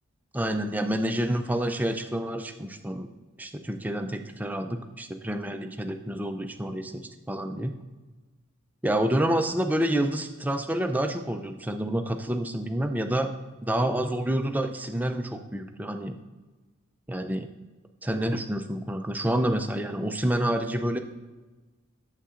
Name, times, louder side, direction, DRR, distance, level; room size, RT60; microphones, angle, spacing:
voice 1, 0.3-3.1 3.4-7.7 8.8-13.3 13.6-16.2 17.1-17.5 18.0-21.0, right 1 dB, 10° right, 6 dB, 0.3 m, -28 dB
8.4 x 7.4 x 2.5 m, 1.2 s
head